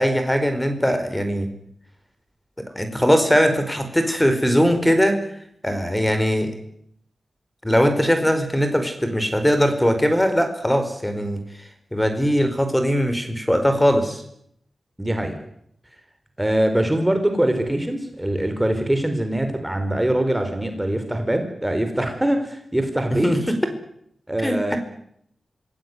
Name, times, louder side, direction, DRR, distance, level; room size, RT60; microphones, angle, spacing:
voice 1, 0.0-1.5 2.8-5.2 5.6-6.5 7.6-11.4 11.9-14.2 23.2-23.6 24.4-24.8, equal, 10° left, 8 dB, 4.5 m, -20 dB
voice 2, 15.0-15.3 16.4-23.3 24.3-24.8, right 1 dB, 10° right, 6 dB, 3.9 m, -23 dB
26.5 x 16.5 x 9.6 m, 0.72 s
wide cardioid pair, 80°, 0 cm